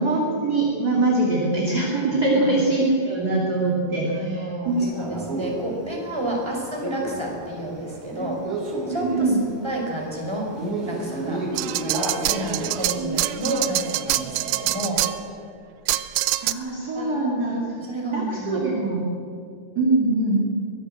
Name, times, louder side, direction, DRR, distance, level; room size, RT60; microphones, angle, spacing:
voice 1, 0.0-4.9 8.9-9.4 13.0-13.4 16.4-17.6 18.1-19.0 19.7-20.4, right 2 dB, 25° right, -2 dB, 2.5 m, -23 dB
voice 2, 4.1-8.4 8.9-9.3 9.6-10.5 10.8-11.4 11.8-15.1 16.9-18.6, right 1 dB, 5° right, -1 dB, 5.0 m, -30 dB
Male speech man speaking, 4.8-13.3, right 2 dB, 45° right, 4.9 m, -32 dB
sound 1, 11.6-15.2 15.9-16.5, right 16 dB, 85° right, 2.9 m, -25 dB
23.5 x 18.0 x 7.8 m, 2.4 s
omnidirectional pair, 4.9 m